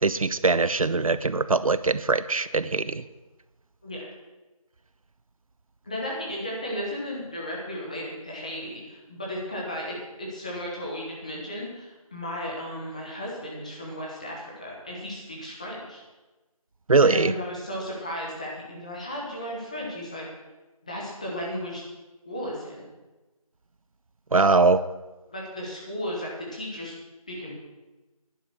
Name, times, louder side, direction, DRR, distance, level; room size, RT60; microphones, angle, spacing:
voice 1, 0.0-3.0 16.9-17.3 24.3-24.9, right 3 dB, 65° right, 15 dB, 0.6 m, -21 dB
voice 2, 5.8-16.0 17.0-20.3 20.8-21.8 22.2-22.9 25.3-26.9 27.3-27.5, equal, 10° left, -3 dB, 1.2 m, -35 dB
10.5 x 9.8 x 6.3 m, 1.1 s
figure-of-eight pair, 175°, 19 cm